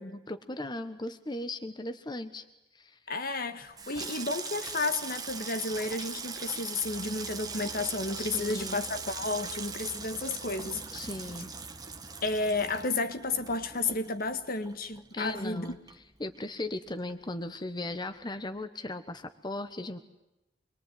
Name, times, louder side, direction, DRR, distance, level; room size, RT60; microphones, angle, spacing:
voice 1, 0.0-2.5 2.7-3.0 8.2-8.8 10.9-11.5 15.1-15.8 16.2-20.0, left 2 dB, 25° left, 1.2 m, -37 dB
voice 2, 3.1-11.0 12.2-15.7, left 3 dB, 55° left, 1.7 m, -32 dB
Water tap faucet / Sink (filling or washing), 3.6-16.5 16.8-17.4 17.7-18.0, right 5 dB, 20° right, 1.7 m, -41 dB
sound 1, 6.8-12.9, left 1 dB, ahead, 3.4 m, -54 dB
26.5 x 22.0 x 9.4 m
head